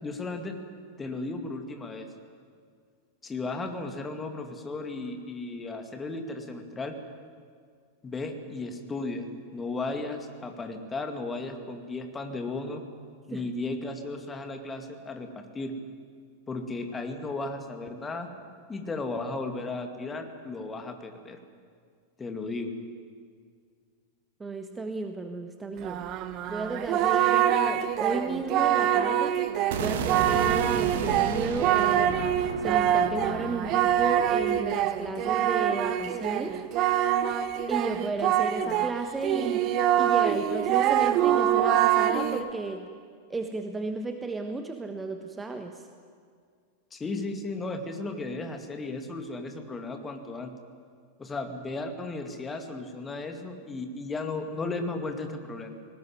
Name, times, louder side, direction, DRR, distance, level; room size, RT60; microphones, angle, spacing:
voice 1, 0.0-0.6 1.0-2.1 3.2-7.0 8.0-9.3 9.5-12.8 13.3-15.8 16.5-18.3 18.7-21.4 22.2-22.7 46.9-50.5 51.2-55.8, left 3 dB, 15° left, 5 dB, 2.3 m, -35 dB
voice 2, 24.4-26.1 26.5-29.4 29.8-32.2 32.6-36.6 37.7-39.6 40.0-42.9 43.3-45.8, right 3 dB, 15° right, 6 dB, 1.2 m, -33 dB
Singing, 25.8-38.9 39.2-42.5, right 10 dB, 35° right, 1.1 m, -25 dB
sound 1, 29.7-35.7, right 7 dB, 55° right, 1.6 m, -34 dB
19.0 x 18.5 x 9.6 m, 2.1 s
figure-of-eight pair, 90°, 0 cm